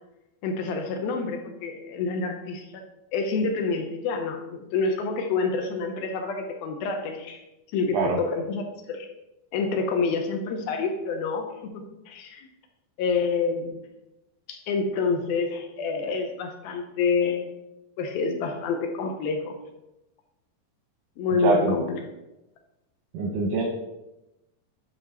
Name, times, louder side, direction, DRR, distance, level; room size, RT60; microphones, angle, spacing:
voice 1, 0.4-2.8 3.1-7.4 7.7-9.1 9.5-12.5 13.0-13.8 14.5-17.5 18.0-19.6 21.2-22.0, left 4 dB, 75° left, 4 dB, 2.5 m, -28 dB
voice 2, 21.4-21.8 23.1-23.6, right 3 dB, 75° right, 1 dB, 1.9 m, -23 dB
9.8 x 5.6 x 4.2 m, 0.96 s
omnidirectional pair, 4.6 m